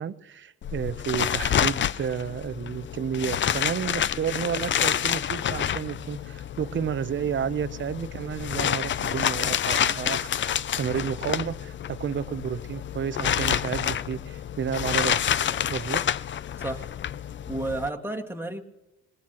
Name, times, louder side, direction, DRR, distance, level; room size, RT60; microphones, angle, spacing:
voice 1, 0.0-10.3 10.8-15.4 15.7-16.2, right 8 dB, 40° right, 12 dB, 0.8 m, -31 dB
sound 1, 0.6-17.9, left 9 dB, 40° left, 0.5 m, -28 dB
voice 2, 16.5-16.9 17.5-18.6, right 2 dB, 5° right, 1 dB, 1.9 m, -31 dB
22.0 x 20.0 x 3.0 m, 0.99 s
cardioid pair, 90°, 30 cm